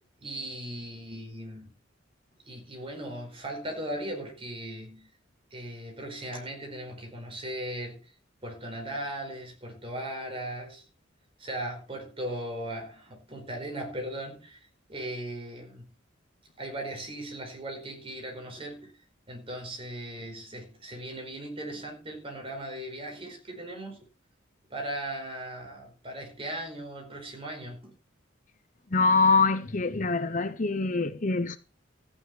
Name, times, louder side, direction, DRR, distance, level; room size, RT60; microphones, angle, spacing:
voice 1, 0.2-1.7 2.5-5.1 5.5-8.1 8.4-10.9 11.4-15.9 16.6-18.9 19.3-24.0 24.7-27.9, right 1 dB, 30° right, 4.8 m, -38 dB
voice 2, 28.9-31.6, left 3 dB, 40° left, 0.8 m, -24 dB
14.0 x 9.8 x 4.8 m
head